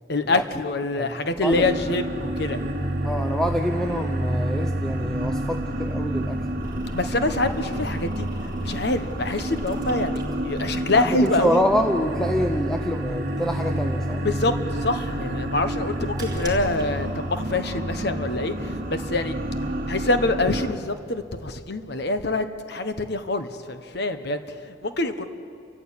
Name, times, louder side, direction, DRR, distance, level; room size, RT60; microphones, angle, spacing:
voice 1, 0.1-2.6 6.9-11.6 14.2-19.3 19.9-25.3, left 2 dB, 55° left, 9 dB, 1.2 m, -25 dB
voice 2, 1.4-1.8 3.0-6.8 10.9-14.3, equal, 5° left, 3 dB, 0.7 m, -26 dB
sound 1, 1.5-20.7, right 1 dB, 45° right, 1.5 m, -29 dB
sound 2, 6.6-16.9, right 1 dB, 20° right, 3.8 m, -40 dB
30.0 x 14.5 x 8.5 m, 2.6 s
head